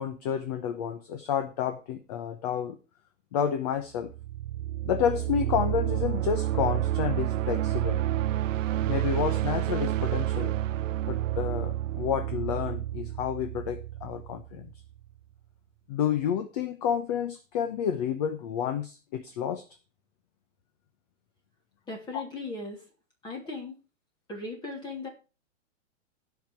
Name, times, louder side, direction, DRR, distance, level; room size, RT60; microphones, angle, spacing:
voice 1, 0.0-2.8 3.3-4.1 4.9-8.0 8.9-10.5 11.1-14.7 15.9-19.6 22.1-22.2, left 8 dB, 30° left, 1.0 m, -30 dB
sound 1, 4.0-14.8, right 13 dB, 85° right, 0.6 m, -29 dB
voice 2, 21.9-22.8 23.2-23.8 24.3-25.1, left 3 dB, 10° left, 2.7 m, -37 dB
16.0 x 5.9 x 4.4 m
hypercardioid pair, 170°, 37 cm